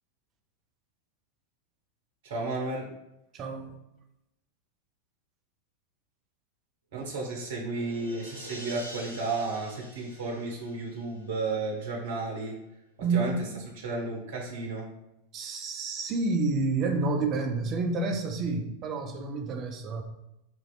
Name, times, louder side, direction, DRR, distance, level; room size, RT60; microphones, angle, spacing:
voice 1, 2.2-2.9 6.9-12.6 13.1-13.3 13.8-14.9, right 3 dB, 50° right, -2 dB, 0.9 m, -33 dB
voice 2, 3.3-3.8 13.0-13.6 15.3-20.0, right 3 dB, 30° right, 4 dB, 0.4 m, -29 dB
sound 1, 7.2-11.6, equal, 85° right, 0.6 m, -47 dB
2.9 x 2.9 x 2.3 m, 0.86 s
figure-of-eight pair, 90°, 0 cm